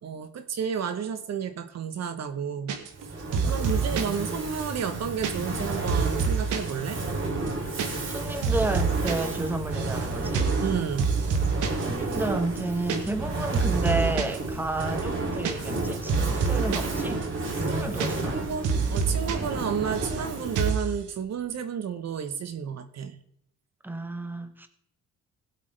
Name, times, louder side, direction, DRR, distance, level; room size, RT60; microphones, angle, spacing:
voice 1, 0.0-2.8 3.0-7.0 10.6-11.1 17.8-18.0 18.3-23.2, right 7 dB, 60° right, 1.1 m, -32 dB
sound 1, 2.7-3.1 3.3-4.2 4.6-6.7 7.0-7.1 7.4-9.1 9.4-10.0 10.3-10.7 11.0-11.8 12.1-12.2 12.5-13.3 13.5-14.4 14.8-16.9 17.2-17.3 17.6-18.4 18.6-19.3 19.6-20.2 20.5-20.9, right 5 dB, 80° right, 1.6 m, -27 dB
Fire, 2.9-20.9, right 2 dB, 40° right, 3.2 m, -31 dB
voice 2, 3.4-4.4 8.1-10.5 11.8-17.2 17.6-18.4 23.8-24.7, right 2 dB, 5° right, 1.3 m, -32 dB
18.0 x 8.2 x 3.4 m
cardioid pair, 90°, 30 cm